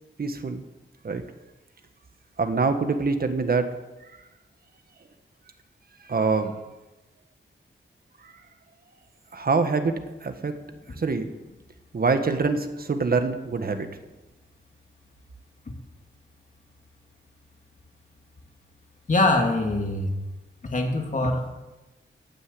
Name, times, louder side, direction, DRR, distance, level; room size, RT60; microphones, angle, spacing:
voice 1, 0.2-0.6 1.0-1.2 2.4-4.2 6.0-6.6 8.2-8.3 9.3-10.5 10.9-11.3 11.9-13.9, right 4 dB, 45° right, 8 dB, 1.5 m, -25 dB
voice 2, 19.1-20.1 20.6-21.5, left 2 dB, 40° left, 3 dB, 2.4 m, -23 dB
14.0 x 9.5 x 8.5 m, 1.1 s
wide cardioid pair, 160°, 21 cm